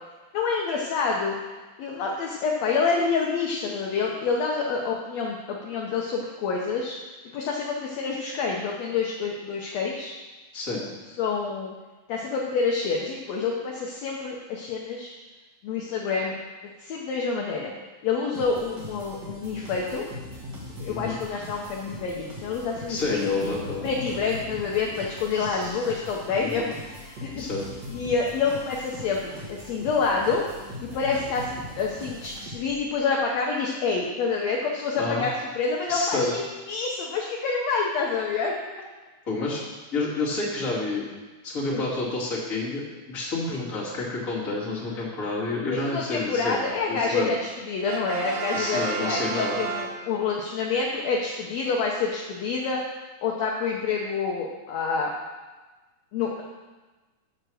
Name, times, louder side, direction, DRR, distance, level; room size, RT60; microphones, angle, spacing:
voice 1, 0.3-1.4 1.8-7.0 7.3-10.1 11.2-11.7 12.1-15.1 15.6-16.4 16.8-17.7 18.0-20.1 20.8-23.2 23.8-27.5 27.9-30.4 30.8-36.4 36.7-38.5 41.7-41.8 43.5-43.6 45.7-52.8 53.2-55.1 56.1-56.4, left 4 dB, 70° left, -1 dB, 1.9 m, -27 dB
voice 2, 10.5-10.8 20.9-21.2 22.9-23.9 25.3-25.8 26.4-26.7 27.4-27.6 35.0-35.2 35.9-36.3 39.3-39.6 39.9-41.1 41.4-46.6 46.9-47.3 48.5-49.6, left 3 dB, 25° left, -6 dB, 2.6 m, -29 dB
sound 1, 18.3-32.9, equal, 40° right, 2.2 m, -40 dB
Brass instrument, 47.9-50.5, right 6 dB, 75° right, 2.1 m, -32 dB
7.7 x 7.3 x 6.3 m, 1.2 s
omnidirectional pair, 3.5 m